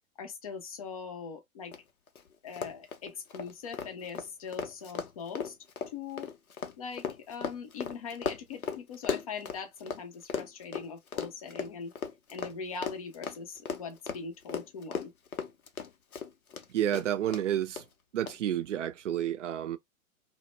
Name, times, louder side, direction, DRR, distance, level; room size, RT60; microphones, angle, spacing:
voice 1, 0.2-1.7 2.4-5.6 5.9-6.3 6.8-11.9 12.3-15.1, left 5 dB, 25° left, 0.4 m, -41 dB
Run, 1.7-1.8 2.1-2.2 2.5-10.0 10.3-16.6 16.9-17.4 17.8-17.9 18.3-18.4, left 6 dB, 80° left, 0.6 m, -36 dB
voice 2, 16.7-17.8 18.1-19.8, right 11 dB, 60° right, 0.5 m, -30 dB
2.1 x 2.0 x 3.0 m
figure-of-eight pair, 105°, 42 cm